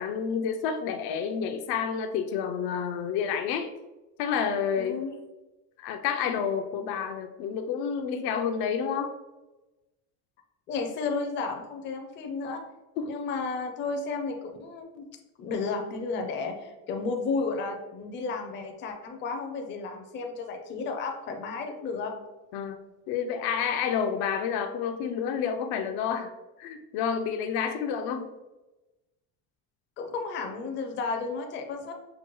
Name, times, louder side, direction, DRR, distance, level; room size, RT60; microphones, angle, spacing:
voice 1, 0.0-3.7 4.2-5.0 5.8-9.1 13.0-13.1 22.5-22.8 23.1-26.3 26.6-28.3, left 7 dB, 80° left, 6 dB, 0.6 m, -29 dB
voice 2, 4.8-5.1 10.7-12.6 13.0-15.1 15.4-22.1 30.0-31.9, left 4 dB, 30° left, 4 dB, 0.4 m, -33 dB
5.9 x 2.3 x 3.0 m, 1.1 s
cardioid pair, 165°, 37 cm